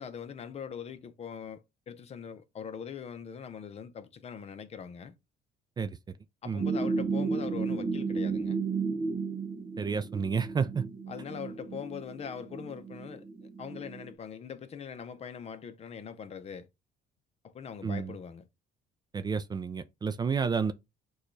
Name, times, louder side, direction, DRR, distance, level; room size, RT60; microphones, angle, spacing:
voice 1, 0.0-5.1 6.4-8.6 11.1-16.7 17.4-18.5, left 7 dB, 40° left, 0.6 m, -42 dB
sound 1, 6.6-14.1, right 4 dB, 50° right, 1.1 m, -33 dB
voice 2, 9.8-10.9 17.8-18.1 19.1-20.7, right 5 dB, 25° right, 0.4 m, -30 dB
6.3 x 2.3 x 3.2 m
cardioid pair, 110°, 17 cm